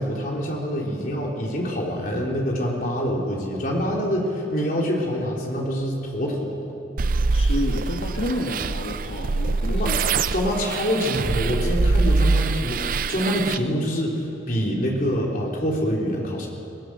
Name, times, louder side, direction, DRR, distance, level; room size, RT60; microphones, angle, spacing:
voice 1, 0.0-6.7 9.7-9.9 10.3-16.5, equal, 45° left, -2 dB, 4.0 m, -25 dB
sound 1, 7.0-13.6, right 3 dB, 45° right, 0.5 m, -23 dB
voice 2, 7.3-10.0, left 1 dB, 75° left, 0 dB, 1.7 m, -30 dB
24.0 x 19.0 x 6.5 m, 2.7 s
head